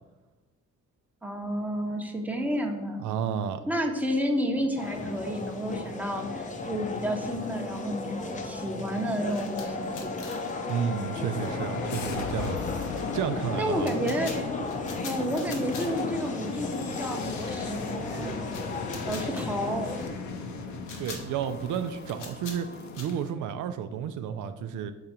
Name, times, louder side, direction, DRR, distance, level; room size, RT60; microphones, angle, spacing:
voice 1, 1.2-3.1 3.7-10.2 13.6-14.3 15.0-18.5 19.1-19.9, equal, 5° right, 3 dB, 0.8 m, -31 dB
voice 2, 3.0-3.6 10.7-12.6 13.1-13.9 21.0-22.7 23.0-24.9, right 8 dB, 80° right, 9 dB, 0.5 m, -31 dB
sound 1, 4.8-20.1, left 3 dB, 25° left, 0.6 m, -36 dB
sound 2, 9.3-11.7 12.0-16.4 16.6-16.8 17.2-18.2 18.4-23.1, left 4 dB, 85° left, 1.2 m, -45 dB
sound 3, 9.5-23.3, left 4 dB, 70° left, 0.8 m, -36 dB
5.8 x 3.8 x 4.3 m, 1.2 s
cardioid pair, 90°, 30 cm